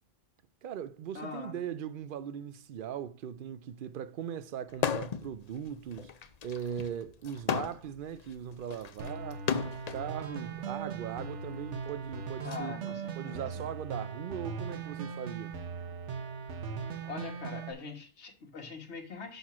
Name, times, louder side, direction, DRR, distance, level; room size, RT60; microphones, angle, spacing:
voice 1, 0.6-6.1 6.4-9.5 9.9-12.7 13.2-15.6, right 9 dB, 60° right, 0.6 m, -39 dB
voice 2, 1.1-1.5 12.4-13.6 17.1-19.4, left 4 dB, 70° left, 1.6 m, -42 dB
sound 1, 4.7-5.3 5.7-10.0 10.9-12.6, left 7 dB, 50° left, 0.5 m, -35 dB
sound 2, 9.0-17.7, right 5 dB, 80° right, 1.2 m, -39 dB
6.7 x 4.4 x 5.9 m
omnidirectional pair, 1.2 m